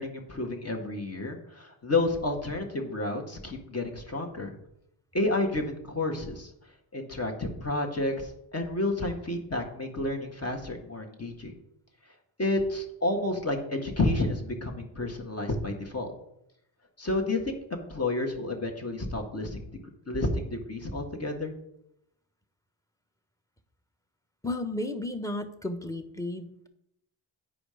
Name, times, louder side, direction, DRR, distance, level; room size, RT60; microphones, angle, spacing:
voice 1, 0.0-4.5 5.1-6.5 6.9-11.5 12.4-16.1 17.0-19.7 20.1-21.5, left 2 dB, 30° left, 2 dB, 1.8 m, -30 dB
voice 2, 24.4-26.7, left 2 dB, 5° left, 6 dB, 1.2 m, -33 dB
9.2 x 5.0 x 5.1 m, 0.80 s
supercardioid pair, 55°, 49 cm